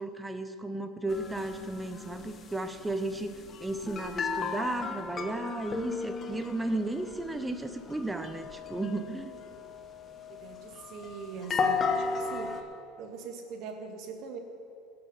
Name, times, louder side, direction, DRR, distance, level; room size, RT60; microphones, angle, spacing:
voice 1, 0.0-9.4, right 2 dB, 10° right, 10 dB, 0.9 m, -34 dB
sound 1, 1.1-12.6, left 5 dB, 30° left, 1.2 m, -35 dB
voice 2, 10.3-12.7 13.0-14.4, right 5 dB, 55° right, 4 dB, 1.9 m, -42 dB
18.0 x 7.6 x 5.8 m, 2.5 s
supercardioid pair, 110°, 0 cm